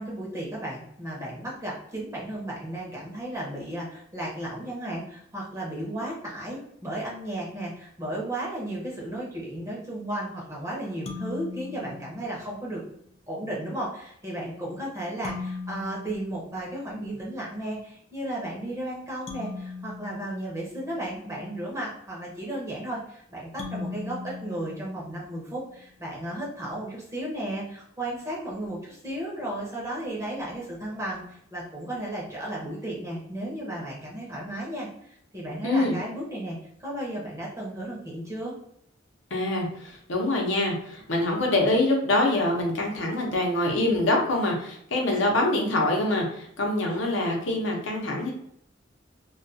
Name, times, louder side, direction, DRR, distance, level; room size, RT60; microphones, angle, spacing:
voice 1, 0.0-12.8 13.3-31.2 31.5-38.5, right 1 dB, 15° right, -4 dB, 0.6 m, -34 dB
sound 1, 11.1-12.7 15.2-17.3 19.3-21.4 23.6-25.6, left 4 dB, 35° left, 0.4 m, -39 dB
voice 2, 35.6-36.0 39.3-48.3, left 1 dB, 70° left, 0 dB, 0.7 m, -25 dB
2.2 x 2.2 x 2.6 m, 0.72 s
head